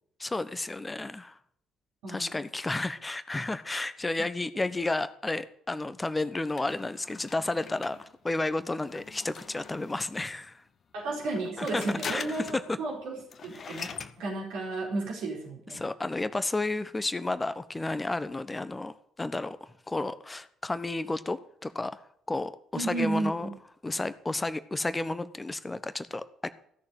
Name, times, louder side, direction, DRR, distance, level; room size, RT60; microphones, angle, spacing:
voice 1, 0.2-1.4 2.1-10.6 11.6-11.8 12.1-12.8 13.6-13.9 15.7-19.6 19.9-22.0 22.3-23.5 23.8-26.5, left 2 dB, 20° left, 13 dB, 1.1 m, -32 dB
sound 1, 6.6-10.2 11.2-12.7 13.0-13.1 13.3-14.2, left 6 dB, 45° left, 1.1 m, -42 dB
voice 2, 10.9-13.1 13.4-13.9 14.2-15.8 22.8-23.5, right 2 dB, 65° right, -1 dB, 4.2 m, -33 dB
16.0 x 7.0 x 8.1 m, 0.68 s
figure-of-eight pair, 45°, 0 cm